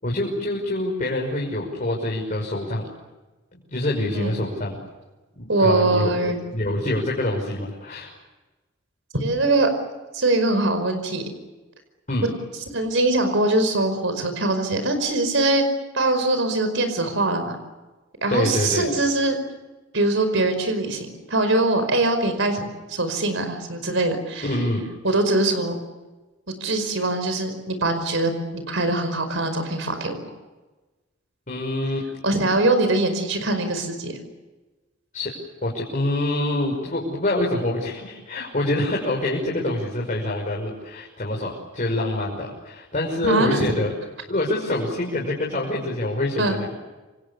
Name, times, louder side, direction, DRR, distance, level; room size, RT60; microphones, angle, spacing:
voice 1, 0.0-2.9 3.7-4.8 5.4-8.1 12.1-12.3 18.3-18.9 24.4-24.9 31.5-32.0 35.1-35.3 35.6-43.9 44.3-46.7, left 1 dB, 40° left, -2 dB, 5.9 m, -26 dB
voice 2, 5.5-6.4 9.1-9.7 10.1-11.2 12.7-15.6 15.9-17.6 18.2-19.4 19.9-24.5 25.0-25.8 26.6-30.2 32.2-34.2 43.2-43.6 46.4-46.5, right 2 dB, 70° right, 8 dB, 5.3 m, -22 dB
29.0 x 26.5 x 7.0 m, 1.2 s
head